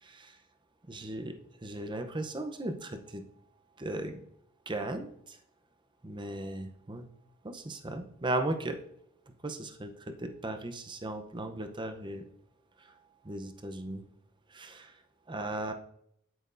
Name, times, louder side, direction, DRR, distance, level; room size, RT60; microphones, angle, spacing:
voice 1, 0.0-0.3 0.9-3.2 3.8-4.2 4.7-5.4 6.0-7.1 7.4-8.8 9.4-12.2 13.2-14.0 14.5-14.9 15.3-15.7, right 2 dB, 20° right, 7 dB, 0.7 m, -37 dB
8.9 x 8.8 x 2.6 m, 0.72 s
head